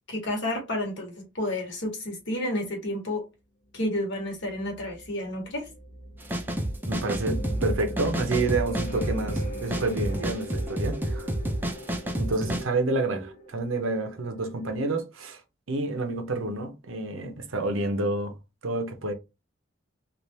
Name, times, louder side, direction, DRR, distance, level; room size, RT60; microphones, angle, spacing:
voice 1, 0.1-3.2 3.7-5.7, left 1 dB, 65° left, 1.5 m, -30 dB
sound 1, 4.4-14.8, right 1 dB, 35° left, 0.9 m, -39 dB
sound 2, 6.2-12.6, right 1 dB, 10° right, 0.5 m, -30 dB
voice 2, 6.9-11.3 12.1-15.4 15.7-18.3 18.6-19.1, right 2 dB, 85° right, 0.8 m, -29 dB
3.3 x 2.5 x 2.7 m
head